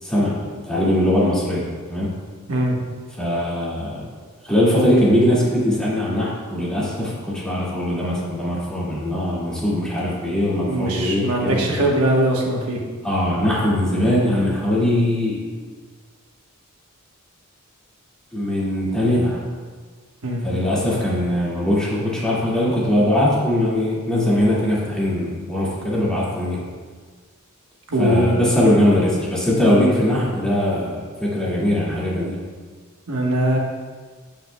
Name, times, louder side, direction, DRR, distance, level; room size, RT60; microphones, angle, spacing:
voice 1, 0.0-2.1 3.2-4.1 4.4-11.8 13.0-15.4 18.3-19.4 20.4-26.6 28.0-32.4, left 1 dB, 5° left, -8 dB, 2.0 m, -21 dB
voice 2, 10.7-12.8 20.2-20.5 27.9-28.3 28.6-28.7 33.1-33.6, right 1 dB, 70° right, -1 dB, 1.2 m, -21 dB
15.5 x 5.2 x 2.2 m, 1.5 s
head